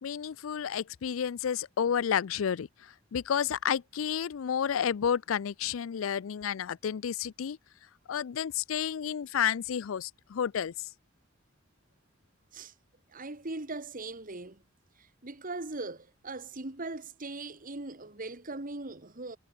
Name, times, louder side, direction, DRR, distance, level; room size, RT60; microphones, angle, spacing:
voice 1, 0.0-2.7 3.1-7.6 8.1-10.7, left 8 dB, 80° left, 0.4 m, -31 dB
voice 2, 13.1-14.6 15.0-19.4, right 2 dB, 45° right, 1.9 m, -40 dB
head